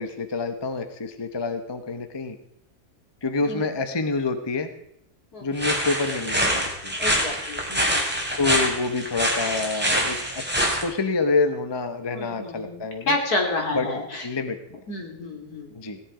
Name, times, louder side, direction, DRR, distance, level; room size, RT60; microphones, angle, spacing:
voice 1, 0.0-2.4 3.2-4.7 5.4-7.0 8.4-10.4 10.7-13.1 13.7-13.9 14.2-14.8 15.7-16.0, left 3 dB, 20° left, 8 dB, 1.0 m, -27 dB
sound 1, 5.6-10.8, equal, 5° right, 2.9 m, -25 dB
voice 2, 7.0-8.1 12.1-14.3 14.9-15.7, left 2 dB, 75° left, 1 dB, 3.2 m, -29 dB
17.0 x 11.0 x 5.0 m, 0.74 s
omnidirectional pair, 1.6 m